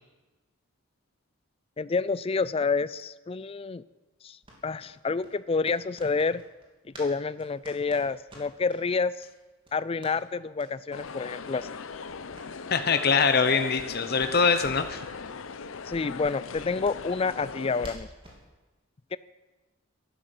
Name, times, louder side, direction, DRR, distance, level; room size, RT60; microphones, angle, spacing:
voice 1, 1.8-3.8 4.2-6.4 6.9-9.3 9.7-11.7 15.9-18.1 19.1-19.2, left 4 dB, 30° left, 17 dB, 0.4 m, -29 dB
sound 1, 4.4-7.1 7.4-8.8 9.2-9.3 9.6-10.2 10.5-10.7 11.0-11.1 11.4-11.6 11.9-13.9 14.2-14.9 15.2-15.4 15.7-15.8 16.2-18.4, right 1 dB, 25° right, 3.0 m, -49 dB
sound 2, 10.9-18.0, left 5 dB, 75° left, 0.7 m, -39 dB
voice 2, 12.7-15.1, left 5 dB, 50° left, 8 dB, 0.9 m, -23 dB
12.0 x 11.5 x 8.3 m, 1.2 s
head